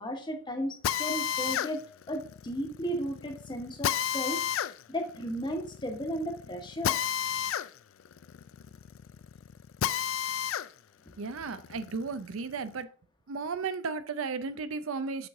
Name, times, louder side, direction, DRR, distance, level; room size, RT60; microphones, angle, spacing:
voice 1, 0.0-7.0, equal, 25° left, 4 dB, 1.1 m, -35 dB
Drill, 0.8-10.7 11.1-12.7, left 9 dB, 70° left, 0.3 m, -33 dB
voice 2, 11.2-12.9 13.3-15.3, right 4 dB, 85° right, 12 dB, 0.5 m, -34 dB
6.7 x 4.7 x 3.6 m, 0.43 s
head